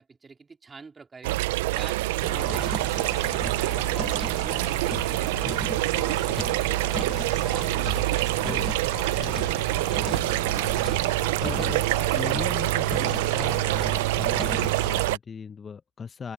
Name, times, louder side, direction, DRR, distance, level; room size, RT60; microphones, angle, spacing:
voice 1, 0.0-1.4 1.7-3.2, right 4 dB, 25° right, 4.0 m, -47 dB
sound 1, 1.2-15.2, right 19 dB, 75° right, 0.7 m, -26 dB
sound 2, 2.2-15.1, left 3 dB, 15° left, 1.9 m, -37 dB
voice 2, 8.4-8.8 9.2-9.4 10.0-10.9 11.4-16.3, left 6 dB, 30° left, 1.1 m, -39 dB
open air
hypercardioid pair, 70°, 0 cm